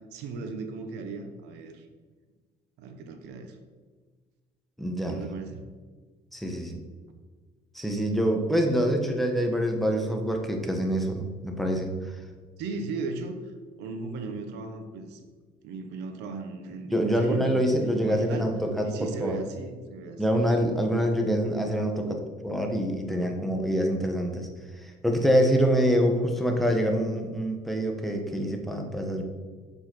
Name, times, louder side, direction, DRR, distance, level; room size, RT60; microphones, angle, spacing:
voice 1, 0.0-1.9 2.8-3.6 5.1-5.7 12.6-13.4 13.8-15.2 15.6-18.5 18.8-20.2, right 3 dB, 90° right, 7 dB, 1.0 m, -36 dB
voice 2, 4.8-5.2 6.3-6.8 7.7-11.9 16.9-19.4 20.2-24.5 24.8-29.2, equal, ahead, 2 dB, 1.2 m, -25 dB
6.5 x 5.5 x 6.0 m, 1.5 s
cardioid pair, 110°, 17 cm